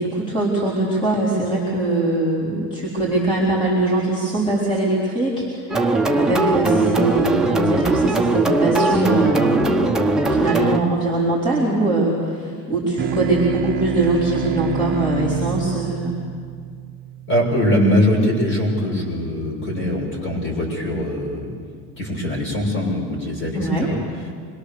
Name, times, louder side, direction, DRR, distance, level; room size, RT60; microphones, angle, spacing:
voice 1, 0.0-16.1 23.5-23.9, right 2 dB, 15° left, -6 dB, 4.3 m, -22 dB
sound 1, 5.7-10.8, right 2 dB, ahead, 1.0 m, -19 dB
sound 2, 13.0-17.8, right 8 dB, 30° right, 0.9 m, -27 dB
voice 2, 17.3-21.5 22.0-24.0, equal, 35° left, -1 dB, 6.4 m, -22 dB
26.5 x 21.5 x 6.9 m, 2.1 s
cardioid pair, 150°, 34 cm